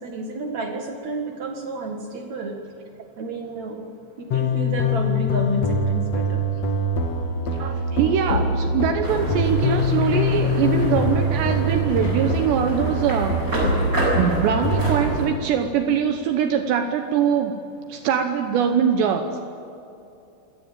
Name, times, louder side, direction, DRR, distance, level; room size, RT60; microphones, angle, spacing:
voice 1, 0.0-2.6 3.2-3.8 4.3-6.4, right 2 dB, 55° right, 3 dB, 2.2 m, -30 dB
sound 1, 4.3-15.0, left 1 dB, 50° left, 2.0 m, -23 dB
voice 2, 7.5-13.4 14.2-17.6 17.9-19.4, right 7 dB, 75° right, 7 dB, 3.0 m, -22 dB
sound 2, 9.0-15.3, right 2 dB, 15° right, 6.0 m, -28 dB
26.5 x 18.0 x 8.9 m, 2.9 s
omnidirectional pair, 5.5 m